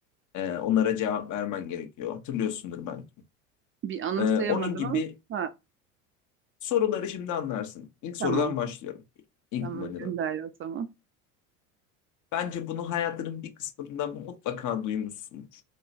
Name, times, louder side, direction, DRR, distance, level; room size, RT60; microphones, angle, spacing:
voice 1, 0.3-3.0 4.2-5.1 6.6-8.9 9.5-10.1 12.3-15.6, left 9 dB, 45° left, 1.1 m, -30 dB
voice 2, 3.8-5.0 5.3-5.5 8.2-8.5 9.6-10.9, right 9 dB, 30° right, 0.5 m, -31 dB
3.7 x 3.2 x 2.6 m
hypercardioid pair, 80°, 41 cm